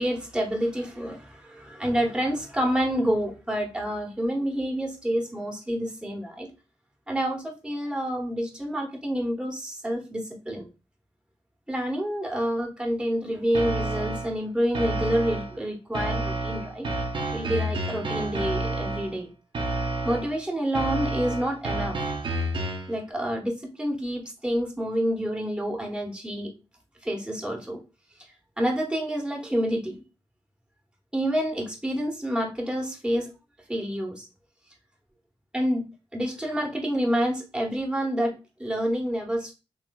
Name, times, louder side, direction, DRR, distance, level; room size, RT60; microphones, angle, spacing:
voice 1, 0.0-6.5 7.1-10.7 11.7-16.9 17.3-19.3 20.0-22.0 22.9-26.5 27.0-27.8 28.6-30.0 31.1-33.3 33.7-34.3 35.5-35.8 36.1-38.3 38.6-39.5, equal, 10° right, -1 dB, 1.1 m, -28 dB
sound 1, 13.5-14.4 14.7-15.6 15.9-19.2 19.5-20.4 20.7-23.0, right 2 dB, 55° right, 0.8 m, -29 dB
3.2 x 3.0 x 2.3 m, 0.30 s
cardioid pair, 65°, 10 cm